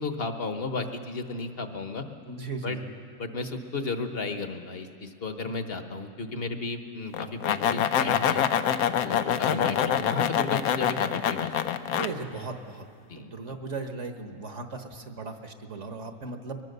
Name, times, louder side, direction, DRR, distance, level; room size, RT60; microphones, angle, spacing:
voice 1, 0.0-2.0 2.6-2.8 3.2-8.5 9.0-11.5 13.1-13.3, left 3 dB, 45° left, 7 dB, 1.3 m, -33 dB
voice 2, 2.3-2.9 9.3-9.7 11.9-12.9 13.1-16.6, right 3 dB, 55° right, 6 dB, 1.6 m, -37 dB
sound 1, 7.1-12.1, left 9 dB, 80° left, 1.2 m, -25 dB
22.0 x 21.5 x 6.7 m, 2.2 s
omnidirectional pair, 1.5 m